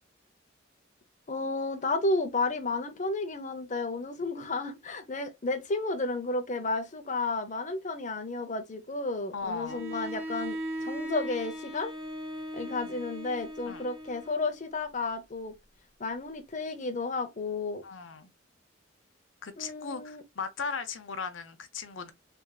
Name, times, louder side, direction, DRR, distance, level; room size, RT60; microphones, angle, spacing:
voice 1, 1.3-11.9 12.5-15.5 16.0-17.8 19.6-20.2, left 3 dB, 40° left, 0.8 m, -32 dB
voice 2, 9.3-9.8 12.8-13.0 13.7-13.8 17.8-18.3 19.4-22.1, left 5 dB, 90° left, 0.8 m, -37 dB
Bowed string instrument, 9.7-14.7, equal, 30° right, 1.5 m, -38 dB
3.6 x 3.5 x 2.3 m
head